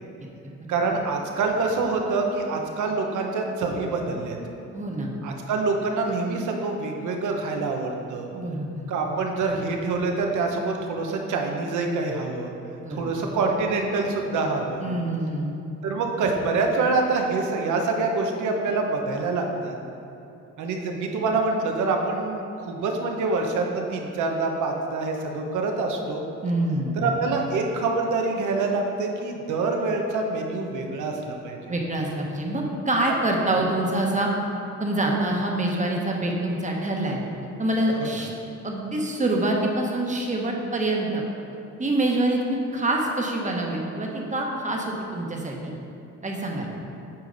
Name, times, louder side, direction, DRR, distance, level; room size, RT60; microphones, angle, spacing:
voice 1, 0.7-4.4 5.2-8.3 8.9-12.5 12.9-14.9 15.8-19.8 20.6-26.2 27.0-31.6 38.0-38.1, right 3 dB, 75° right, 2 dB, 1.0 m, -26 dB
voice 2, 4.7-5.2 8.3-8.8 12.8-13.1 14.8-15.5 26.4-27.1 31.7-34.3 34.8-37.2 37.6-38.3 38.6-41.2 41.8-45.7 46.2-46.7, right 1 dB, 25° right, 0 dB, 1.2 m, -26 dB
8.5 x 5.0 x 4.0 m, 2.6 s
cardioid pair, 90°, 30 cm